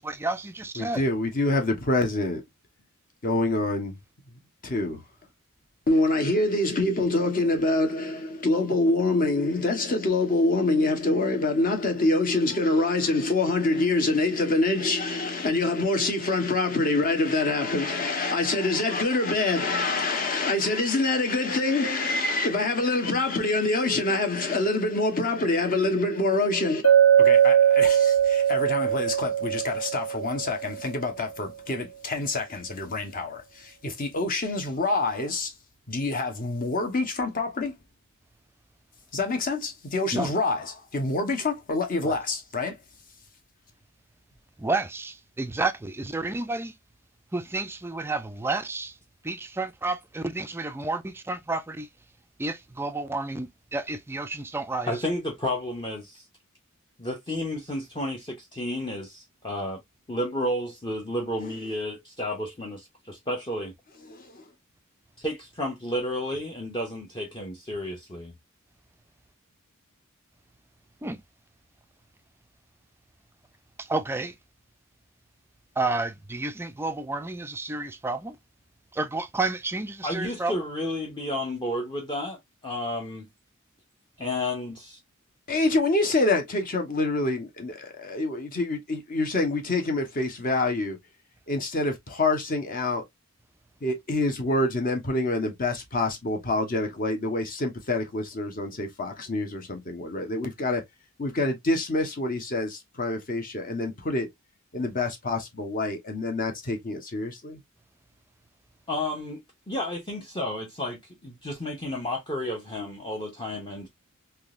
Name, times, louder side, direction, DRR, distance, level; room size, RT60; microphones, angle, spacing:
voice 1, 0.0-1.0 40.1-40.3 42.0-42.2 44.6-46.7 47.3-48.9 49.2-51.9 52.4-54.9 71.0-71.2 73.8-74.3 75.8-78.4 78.9-80.5, right 3 dB, 10° right, 0.3 m, -30 dB
voice 2, 0.8-2.4 3.2-4.0 4.6-5.0 5.9-26.8 27.2-33.4 33.8-35.5 35.9-37.7 39.1-42.8 64.1-64.2 85.5-91.0 91.5-93.0 93.8-100.8 101.2-104.3 104.7-107.6, left 2 dB, 40° left, 1.0 m, -26 dB
Chink clink, 26.8-30.9, right 9 dB, 85° left, 1.1 m, -20 dB
voice 3, 54.9-56.3 57.0-59.8 60.1-63.7 65.2-68.3 80.0-83.3 84.2-85.0 108.9-113.9, left 1 dB, 20° left, 0.7 m, -32 dB
3.6 x 2.9 x 2.4 m
head